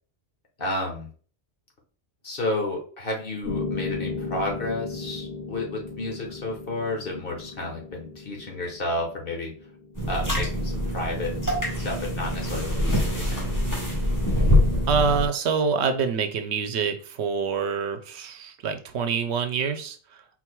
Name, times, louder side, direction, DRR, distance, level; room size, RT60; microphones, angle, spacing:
voice 1, 0.6-1.1 2.2-9.5 10.1-11.4 11.7-13.5, left 2 dB, 55° left, 1 dB, 1.4 m, -31 dB
Piano, 3.4-11.5, left 3 dB, 90° left, 2.1 m, -36 dB
sound 1, 9.9-15.3, left 1 dB, 15° left, 1.5 m, -24 dB
voice 2, 14.9-20.0, right 6 dB, 75° right, 8 dB, 0.9 m, -26 dB
4.5 x 4.1 x 2.2 m, 0.41 s
omnidirectional pair, 1.1 m